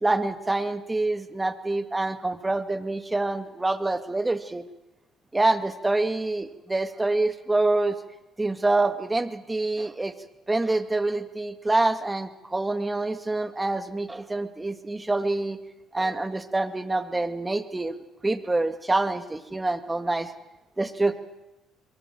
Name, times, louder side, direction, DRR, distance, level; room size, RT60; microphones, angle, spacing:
voice 1, 0.0-4.6 5.3-8.0 8.4-10.1 10.5-15.6 15.9-20.3 20.8-21.2, right 2 dB, 15° right, 8 dB, 2.1 m, -26 dB
22.5 x 22.0 x 7.8 m, 0.99 s
hypercardioid pair, 60°, 0 cm